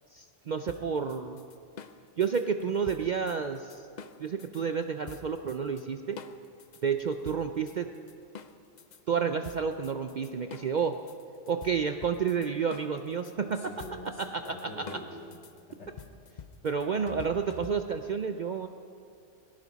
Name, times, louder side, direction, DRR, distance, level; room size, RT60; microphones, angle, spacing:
voice 1, 0.1-1.4 2.2-3.8 4.2-6.2 6.8-7.9 9.1-11.0 11.5-13.7 14.2-15.0 16.6-18.7, right 6 dB, 55° right, 7 dB, 0.5 m, -30 dB
sound 1, 0.7-4.6 5.1-5.8 6.2-9.0 9.4-18.1, left 6 dB, 50° left, 0.6 m, -47 dB
voice 2, 13.6-15.4 15.8-15.9, left 1 dB, 65° left, 0 dB, 2.2 m, -44 dB
19.5 x 16.5 x 4.1 m, 2.4 s
omnidirectional pair, 1.2 m